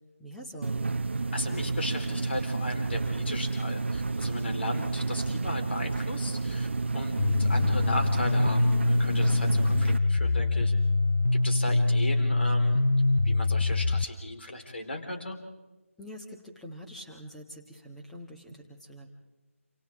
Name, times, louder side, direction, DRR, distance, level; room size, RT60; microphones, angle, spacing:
voice 1, 0.2-0.9 16.0-19.1, equal, ahead, -1 dB, 1.5 m, -45 dB
sound 1, 0.6-10.0, right 3 dB, 50° right, 0.8 m, -30 dB
voice 2, 1.3-6.7 6.9-10.7 11.4-12.8 13.2-15.4, left 1 dB, 50° left, 4 dB, 4.3 m, -36 dB
sound 2, 7.2-14.0, left 2 dB, 70° left, 0.9 m, -24 dB
28.5 x 27.5 x 3.7 m, 1.1 s
figure-of-eight pair, 165°, 8 cm